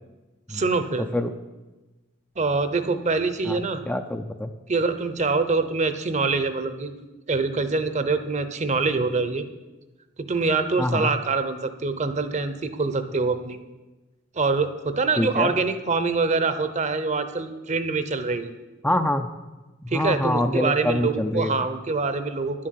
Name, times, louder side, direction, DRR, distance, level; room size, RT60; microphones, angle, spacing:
voice 1, 0.5-1.1 2.4-3.8 4.7-6.9 7.3-9.5 10.2-13.6 14.4-18.5 19.9-22.7, right 4 dB, 35° right, 11 dB, 0.8 m, -25 dB
voice 2, 3.9-4.5 10.8-11.1 15.2-15.5 18.8-19.3 19.8-21.5, left 1 dB, 10° left, 6 dB, 0.4 m, -25 dB
10.5 x 7.5 x 8.4 m, 1.1 s
head